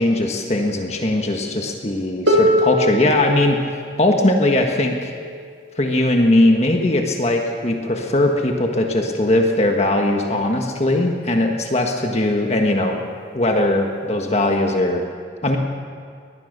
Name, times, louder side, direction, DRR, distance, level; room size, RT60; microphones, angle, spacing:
voice 1, 0.0-3.6 4.0-5.1 5.7-13.0 13.3-15.0 15.4-15.6, left 1 dB, 35° left, 2 dB, 1.6 m, -19 dB
Harp, 2.3-8.1 9.1-9.2, equal, 85° right, 2.5 m, -24 dB
23.5 x 20.0 x 6.8 m, 2.1 s
head